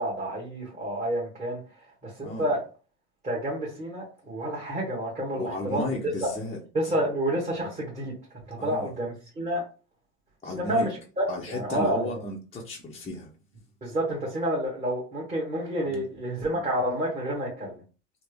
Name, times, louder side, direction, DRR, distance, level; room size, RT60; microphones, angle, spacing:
voice 1, 0.0-1.6 2.0-2.6 3.2-5.9 6.2-6.3 6.7-8.1 8.5-9.6 10.5-10.9 11.2-12.2 13.8-17.8, right 1 dB, 20° right, 1.3 m, -29 dB
voice 2, 5.3-6.9 8.6-8.9 10.4-10.9 11.3-13.3 15.9-16.1, left 1 dB, 15° left, 0.7 m, -34 dB
3.3 x 2.1 x 3.4 m
hypercardioid pair, 90°, 36 cm